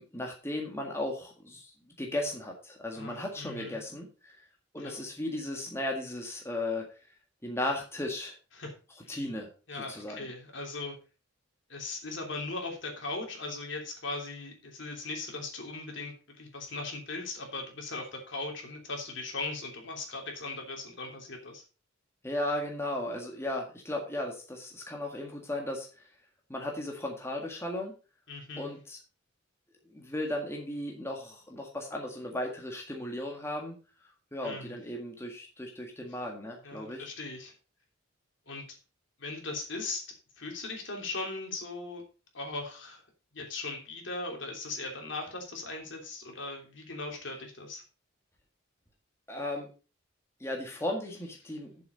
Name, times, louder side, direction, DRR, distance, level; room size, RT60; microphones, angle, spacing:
voice 1, 0.0-4.5 4.7-6.9 7.4-8.4 9.1-9.5 9.9-10.3 22.2-26.1 26.5-27.9 28.6-29.0 29.9-33.8 34.3-37.1 49.3-49.7 50.4-51.7, left 1 dB, 15° left, 0 dB, 1.7 m, -36 dB
voice 2, 2.9-3.8 4.8-5.0 8.6-8.7 9.0-9.2 9.7-11.0 11.7-21.6 28.3-28.7 34.4-34.8 36.6-37.5 38.5-38.8 39.2-42.0 42.3-43.0 43.3-47.8, left 3 dB, 60° left, 2 dB, 3.1 m, -39 dB
8.6 x 7.3 x 5.2 m, 0.34 s
head